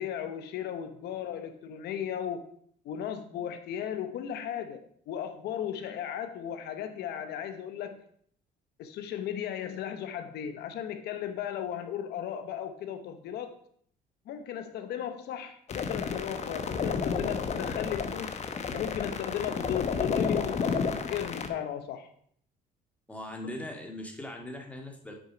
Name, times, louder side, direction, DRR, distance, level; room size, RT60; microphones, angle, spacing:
voice 1, 0.0-2.5 2.8-8.0 8.8-13.5 14.3-18.4 18.7-22.1 23.4-23.5, left 9 dB, 75° left, 8 dB, 0.9 m, -36 dB
sound 1, 15.7-21.5, left 5 dB, 40° left, 1.0 m, -31 dB
voice 2, 23.1-25.1, left 1 dB, 10° left, 2 dB, 2.0 m, -40 dB
8.5 x 6.3 x 5.1 m, 0.63 s
cardioid pair, 110°, 17 cm